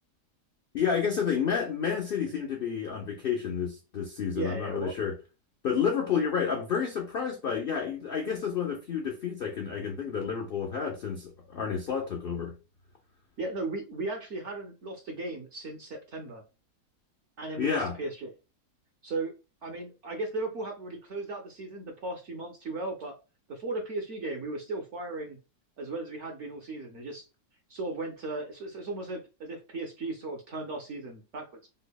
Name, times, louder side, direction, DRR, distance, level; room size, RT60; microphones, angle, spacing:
voice 1, 0.7-5.1 5.6-12.6 17.6-18.0, left 7 dB, 85° left, 0.5 m, -30 dB
voice 2, 4.3-4.9 13.4-16.4 17.4-18.3 19.0-19.3 19.6-23.2 23.5-25.4 25.8-27.3 27.7-31.7, right 2 dB, 60° right, 0.8 m, -36 dB
5.3 x 2.1 x 2.2 m
omnidirectional pair, 1.8 m